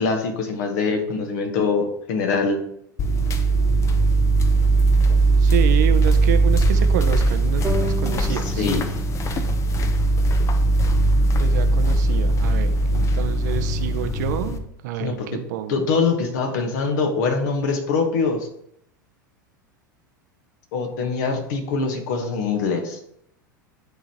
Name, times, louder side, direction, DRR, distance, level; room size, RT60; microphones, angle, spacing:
voice 1, 0.0-2.6 8.3-8.9 15.0-15.3 15.7-18.5 20.7-23.0, left 4 dB, 60° left, 4 dB, 1.4 m, -23 dB
sound 1, 3.0-14.6, right 2 dB, 30° left, 0.7 m, -19 dB
voice 2, 5.4-8.7 11.4-15.8, right 11 dB, 60° right, 9 dB, 0.7 m, -28 dB
sound 2, 7.6-10.9, right 2 dB, 20° right, 0.8 m, -34 dB
11.0 x 3.8 x 2.9 m, 0.72 s
figure-of-eight pair, 85°, 11 cm